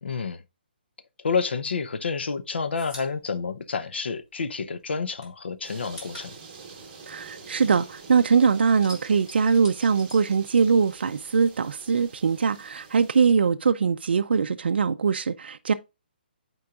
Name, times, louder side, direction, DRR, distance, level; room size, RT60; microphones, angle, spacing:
voice 1, 0.0-0.4 1.2-6.3, left 5 dB, 90° left, 0.7 m, -29 dB
sound 1, 1.7-4.5 4.8-8.1 8.4-11.0 11.3-12.4, left 1 dB, 20° left, 1.7 m, -47 dB
sound 2, 5.6-13.3, right 4 dB, 25° right, 1.1 m, -47 dB
voice 2, 7.1-15.7, right 5 dB, 70° right, 0.4 m, -22 dB
9.5 x 4.5 x 2.4 m
hypercardioid pair, 180°, 6 cm